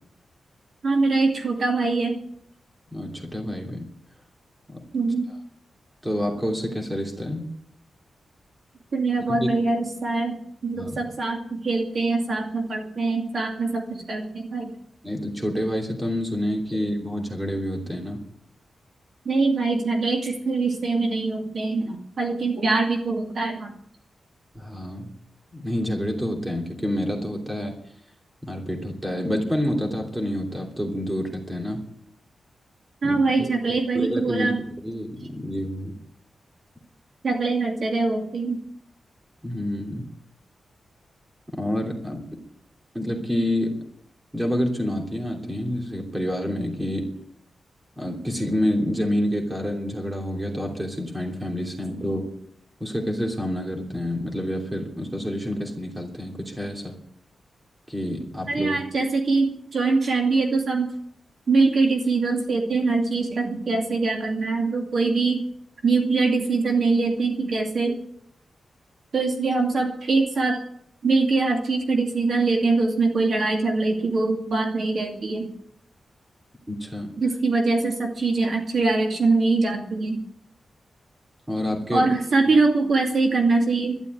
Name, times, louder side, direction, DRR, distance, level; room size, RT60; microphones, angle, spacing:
voice 1, 0.8-2.2 4.9-5.3 8.9-14.7 19.2-23.7 33.0-34.6 37.2-38.6 58.5-60.9 61.5-65.4 65.8-68.0 69.1-70.6 71.0-75.5 77.2-80.2 81.9-84.0, right 3 dB, 50° right, 2 dB, 2.4 m, -23 dB
voice 2, 2.9-3.9 4.7-4.8 6.0-7.5 9.3-9.5 10.7-11.0 15.0-18.2 24.5-25.1 25.5-27.8 28.4-31.8 33.0-33.5 33.9-35.9 39.4-40.0 41.5-42.4 42.9-43.8 44.3-47.1 48.0-52.3 52.8-57.0 57.9-58.8 76.7-77.1 81.5-82.1 82.5-82.6, equal, 10° right, 1 dB, 3.0 m, -28 dB
12.5 x 11.0 x 9.3 m, 0.69 s
wide cardioid pair, 165°, 0 cm